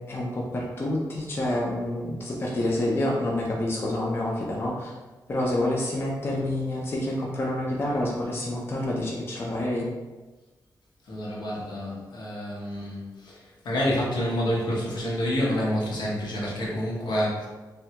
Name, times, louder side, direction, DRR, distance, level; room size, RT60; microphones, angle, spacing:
voice 1, 0.1-4.9 5.3-9.9, left 1 dB, 30° left, -3 dB, 0.4 m, -28 dB
voice 2, 11.1-17.5, equal, 75° left, -4 dB, 0.8 m, -28 dB
3.3 x 2.2 x 2.8 m, 1.2 s
wide cardioid pair, 175°, 8 cm